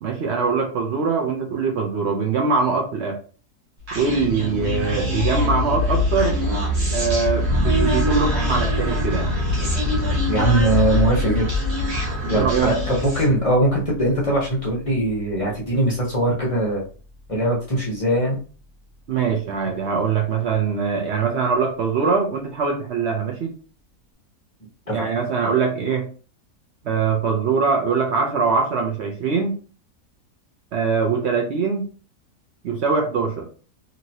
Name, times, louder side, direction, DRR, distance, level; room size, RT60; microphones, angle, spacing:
voice 1, 0.0-3.2 3.9-6.4 6.9-9.3 12.3-12.7 19.1-23.6 24.9-26.1 26.8-29.5 30.7-31.9 32.6-33.5, right 5 dB, 70° right, 1 dB, 0.6 m, -22 dB
Human voice, 3.9-13.4, left 1 dB, 45° right, 1.3 m, -23 dB
sound 1, 7.5-18.0, left 2 dB, 90° right, 1.3 m, -30 dB
voice 2, 10.3-11.5 12.3-16.8 17.3-18.4 24.9-25.1, right 1 dB, 45° left, -3 dB, 0.4 m, -21 dB
2.9 x 2.7 x 2.7 m, 0.39 s
omnidirectional pair, 1.7 m